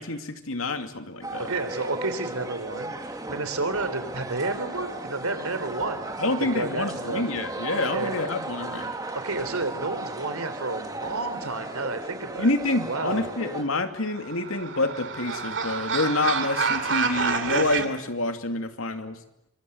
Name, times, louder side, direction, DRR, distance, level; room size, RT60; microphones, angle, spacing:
voice 1, 0.0-1.5 6.2-8.9 12.4-19.2, left 2 dB, 75° left, 7 dB, 2.5 m, -27 dB
sound 1, 1.2-13.6, right 2 dB, 15° right, 2.2 m, -35 dB
voice 2, 1.4-2.9 3.3-6.1 6.4-7.3 7.9-8.1 9.1-12.5 12.8-13.2, right 3 dB, 90° right, 11 dB, 3.5 m, -30 dB
sound 2, 14.0-17.9, right 5 dB, 55° right, 2.8 m, -28 dB
25.5 x 25.5 x 8.0 m, 0.81 s
head